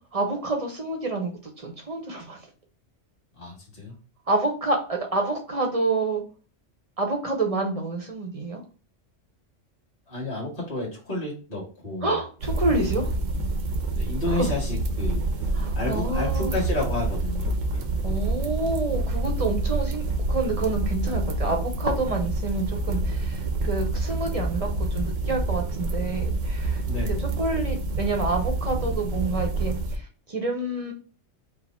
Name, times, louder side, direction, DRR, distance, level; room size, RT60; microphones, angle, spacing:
voice 1, 0.1-2.4 4.3-6.2 7.0-8.6 12.0-13.1 14.3-14.5 15.6-16.6 18.0-30.9, right 2 dB, 35° right, 3 dB, 0.7 m, -28 dB
voice 2, 3.3-4.0 10.1-12.2 12.9-13.1 13.9-17.9 26.8-27.3, left 2 dB, 30° left, -5 dB, 1.5 m, -31 dB
sound 1, 12.4-30.0, right 2 dB, 80° right, 1.0 m, -27 dB
4.5 x 2.1 x 4.2 m, 0.37 s
omnidirectional pair, 1.3 m